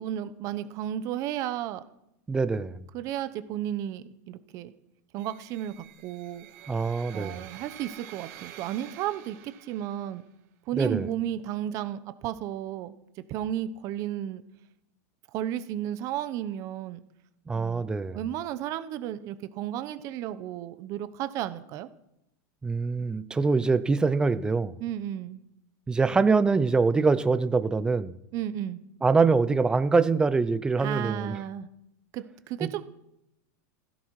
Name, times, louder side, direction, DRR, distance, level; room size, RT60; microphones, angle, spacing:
voice 1, 0.0-1.8 2.9-4.7 5.1-6.5 7.1-10.2 10.7-12.9 13.3-14.4 15.3-17.0 17.5-21.9 24.8-25.4 28.3-28.8 30.8-31.7 32.1-32.8, right 11 dB, 35° right, 12 dB, 0.9 m, -33 dB
voice 2, 2.3-2.8 6.7-7.5 10.7-11.1 17.5-18.2 22.6-24.8 25.9-28.2 29.0-31.4, right 4 dB, 10° right, 14 dB, 0.5 m, -24 dB
sound 1, 5.2-10.2, right 12 dB, 50° right, 2.4 m, -48 dB
16.5 x 15.5 x 4.8 m, 0.82 s
supercardioid pair, 165°, 10 cm